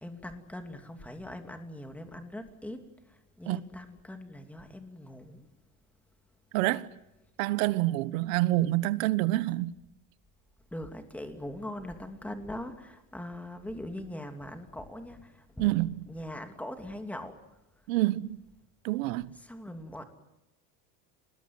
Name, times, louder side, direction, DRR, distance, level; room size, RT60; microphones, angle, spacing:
voice 1, 0.0-5.5 10.7-15.8 16.0-17.6 19.3-20.0, left 1 dB, 5° left, 2.8 m, -41 dB
voice 2, 6.5-6.9 7.4-9.7 15.6-16.0 17.9-18.4 18.8-19.4, right 17 dB, 80° right, 1.3 m, -27 dB
29.0 x 20.5 x 9.5 m
supercardioid pair, 145°, 40 cm